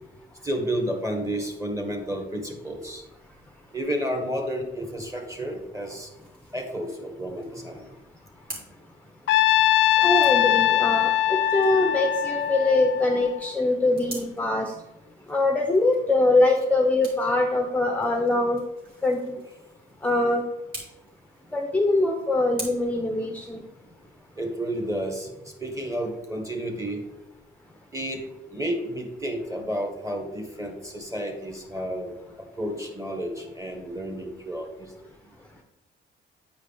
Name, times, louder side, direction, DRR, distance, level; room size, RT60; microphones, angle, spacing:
voice 1, 0.4-3.0 3.7-6.1 6.5-7.9 24.4-27.0 27.9-28.2 28.5-34.9, equal, 15° right, 3 dB, 1.7 m, -31 dB
sound 1, 4.6-22.6, right 1 dB, 50° right, 2.7 m, -47 dB
Trumpet, 9.3-13.5, left 12 dB, 70° left, 0.4 m, -22 dB
voice 2, 10.0-14.7 15.3-18.6 19.0-19.4 20.0-20.4 21.5-23.6, left 2 dB, 5° left, 2 dB, 0.8 m, -23 dB
9.1 x 4.9 x 3.5 m, 0.95 s
cardioid pair, 90°, 20 cm